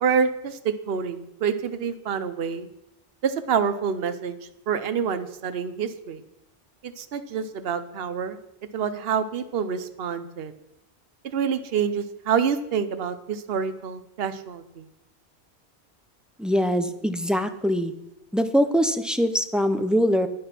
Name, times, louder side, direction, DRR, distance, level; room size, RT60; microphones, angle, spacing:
voice 1, 0.0-2.7 3.2-4.3 4.7-6.2 6.8-8.4 8.7-10.5 11.3-14.9, right 7 dB, 65° right, 10 dB, 1.0 m, -27 dB
voice 2, 16.4-17.9 18.3-20.3, equal, ahead, 8 dB, 0.6 m, -23 dB
10.0 x 10.0 x 5.9 m, 0.84 s
omnidirectional pair, 1.1 m